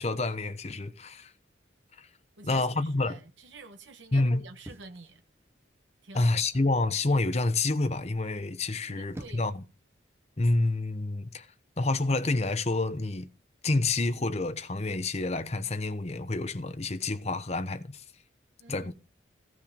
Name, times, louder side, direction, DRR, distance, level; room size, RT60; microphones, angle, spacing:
voice 1, 0.0-1.3 2.0-2.1 2.4-3.2 4.1-4.5 6.1-9.6 10.4-11.5 11.8-13.3 13.6-18.0 18.7-18.9, left 2 dB, 35° left, 0.9 m, -28 dB
voice 2, 2.4-5.2 6.0-6.4 8.9-9.6 18.6-18.9, right 3 dB, 80° right, 1.1 m, -48 dB
sound 1, 4.6-5.7 6.4-6.8 8.8-9.7 10.6-10.9, right 1 dB, 15° right, 0.8 m, -47 dB
15.5 x 6.5 x 5.1 m
head